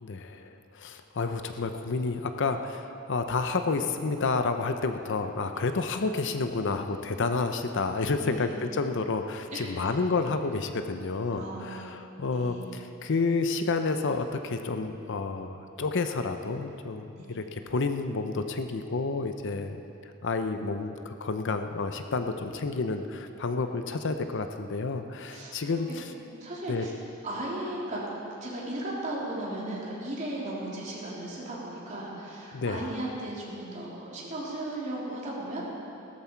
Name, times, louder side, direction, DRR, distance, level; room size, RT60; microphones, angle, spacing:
voice 1, 0.0-19.8 20.2-26.1 26.7-26.9 32.5-32.9, left 3 dB, 60° left, 7 dB, 0.7 m, -30 dB
voice 2, 8.2-8.5 9.5-9.8 11.3-12.0 12.3-12.7 17.2-17.3 25.3-25.6 26.3-26.9 27.2-28.0 28.4-35.7, right 1 dB, 35° right, -5 dB, 3.2 m, -36 dB
17.5 x 13.0 x 4.6 m, 2.8 s
head